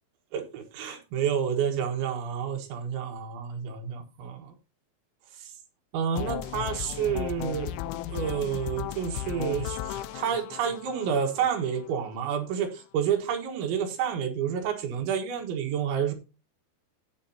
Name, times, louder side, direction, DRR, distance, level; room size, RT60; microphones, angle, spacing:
voice 1, 0.3-4.5 5.3-5.5 5.9-7.8 8.1-16.1, right 8 dB, 80° right, 4 dB, 3.9 m, -29 dB
sound 1, 6.2-12.1, left 12 dB, 85° left, 2.2 m, -36 dB
15.0 x 8.7 x 2.8 m, 0.31 s
omnidirectional pair, 5.2 m